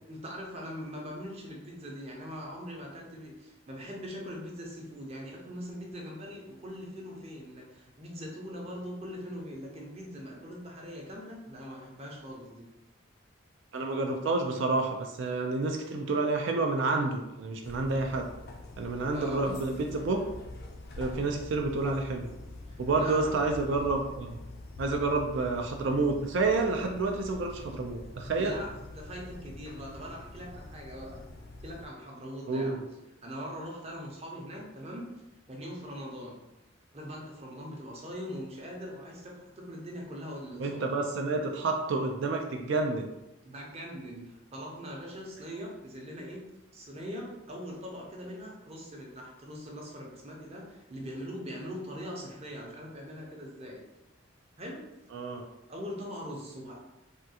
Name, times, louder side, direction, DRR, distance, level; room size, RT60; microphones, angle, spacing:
voice 1, 0.1-12.7 19.1-19.5 22.7-23.3 28.4-31.2 31.6-32.8 33.2-35.1 35.5-36.4 36.9-40.8 43.4-46.5 46.7-53.8 54.6-54.8 55.7-56.8, equal, 30° right, -1 dB, 0.7 m, -41 dB
voice 2, 13.7-18.3 18.8-20.4 21.0-22.3 22.8-24.4 24.8-28.6 32.5-32.8 40.6-43.1 55.1-55.4, right 3 dB, 65° right, 3 dB, 0.4 m, -29 dB
sound 1, 17.6-31.9, left 2 dB, 50° left, 0.4 m, -45 dB
3.5 x 2.3 x 2.8 m, 0.93 s
head